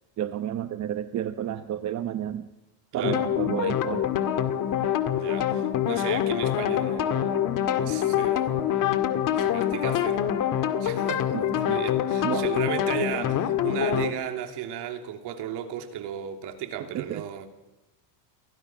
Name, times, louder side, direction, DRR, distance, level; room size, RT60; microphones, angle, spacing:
voice 1, 0.2-2.5 2.9-4.1 11.3-11.8 12.2-12.4 16.9-17.2, right 11 dB, 35° right, 0.9 m, -31 dB
voice 2, 2.9-3.3 5.1-8.7 9.1-10.3 10.8-17.5, right 10 dB, 55° right, 3.1 m, -35 dB
sound 1, 3.0-14.1, left 10 dB, 40° left, 1.9 m, -25 dB
28.5 x 23.5 x 6.1 m
cardioid pair, 145°, 48 cm